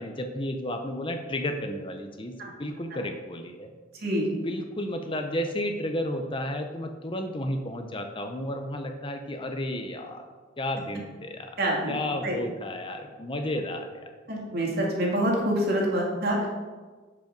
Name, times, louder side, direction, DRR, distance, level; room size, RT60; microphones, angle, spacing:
voice 1, 0.0-3.7 4.4-10.3 10.6-11.5 11.9-14.1, left 1 dB, 25° left, 5 dB, 0.7 m, -32 dB
voice 2, 11.6-12.0 12.2-12.3 14.3-16.5, right 1 dB, 55° right, -2 dB, 2.3 m, -26 dB
11.0 x 5.4 x 5.3 m, 1.4 s
head